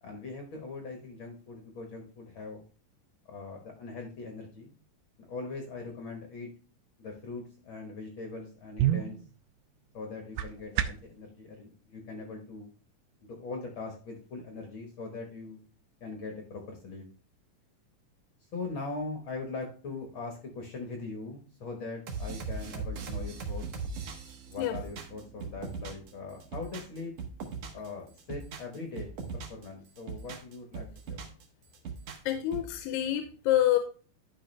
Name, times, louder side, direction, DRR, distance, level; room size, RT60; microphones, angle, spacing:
voice 1, 0.0-2.6 3.3-4.7 5.3-6.5 7.0-9.2 9.9-12.7 13.2-15.6 16.0-17.0 18.5-23.7 24.4-27.1 27.7-31.3, left 3 dB, 60° left, 3 dB, 1.3 m, -41 dB
sound 1, 8.3-11.2, right 12 dB, 85° right, 2.2 m, -32 dB
sound 2, 22.1-26.1 26.4-27.9 28.2-29.6 30.0-31.4 31.7-32.7, right 4 dB, 60° right, 2.0 m, -39 dB
voice 2, 32.3-33.8, left 12 dB, 90° left, 8 dB, 2.4 m, -27 dB
11.5 x 5.2 x 3.2 m, 0.38 s
omnidirectional pair, 4.0 m